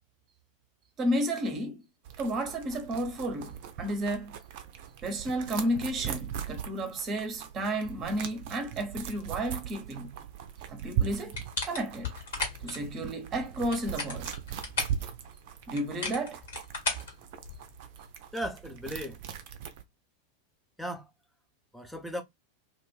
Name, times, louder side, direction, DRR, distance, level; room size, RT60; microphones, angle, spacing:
voice 1, 1.0-1.8 2.2-4.4 5.0-10.2 10.7-11.4 11.6-12.1 12.6-14.3 15.7-16.4, right 1 dB, 25° right, 0.9 m, -32 dB
sound 1, 2.0-19.8, right 9 dB, 50° right, 0.5 m, -39 dB
sound 2, 11.3-12.8 13.5-15.0 15.8-17.8, left 3 dB, 60° left, 1.5 m, -35 dB
voice 2, 18.3-19.2 20.8-21.1 21.7-22.2, equal, ahead, 0.7 m, -36 dB
2.5 x 2.5 x 3.2 m
figure-of-eight pair, 90°, 0 cm